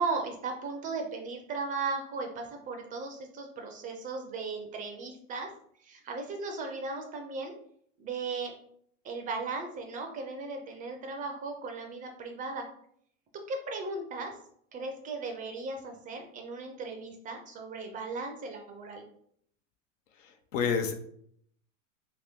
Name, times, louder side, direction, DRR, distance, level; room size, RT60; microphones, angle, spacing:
voice 1, 0.0-5.5 5.8-7.5 8.0-8.6 9.0-12.7 13.5-14.3 14.7-19.0, right 4 dB, 20° right, 3 dB, 0.4 m, -36 dB
voice 2, 20.2-21.0, left 6 dB, 75° left, 7 dB, 0.8 m, -30 dB
2.9 x 2.9 x 3.4 m, 0.66 s
supercardioid pair, 125°, 38 cm